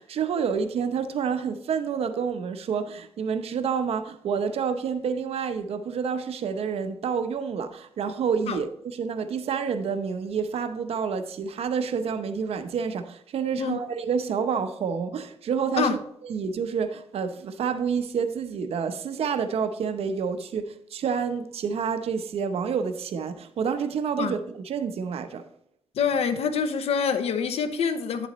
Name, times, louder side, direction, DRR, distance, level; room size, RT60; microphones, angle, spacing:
voice 1, 0.0-15.9 16.2-25.4, right 6 dB, 75° right, 0.8 m, -28 dB
voice 2, 26.0-28.3, left 6 dB, 85° left, 0.8 m, -26 dB
9.7 x 7.0 x 3.1 m
wide cardioid pair, 120°, 10 cm